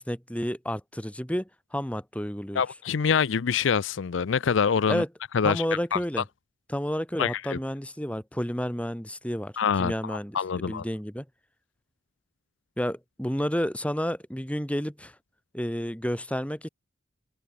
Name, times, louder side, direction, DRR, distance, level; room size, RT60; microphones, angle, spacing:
voice 1, 0.0-2.6 4.9-5.1 5.4-6.2 6.7-9.5 9.8-11.2 12.8-15.1 15.5-16.7, equal, 5° left, 3.2 m, -30 dB
voice 2, 2.6-5.0 5.3-5.6 5.9-6.0 7.2-7.6 9.6-10.8, left 6 dB, 70° left, 0.5 m, -25 dB
open air
head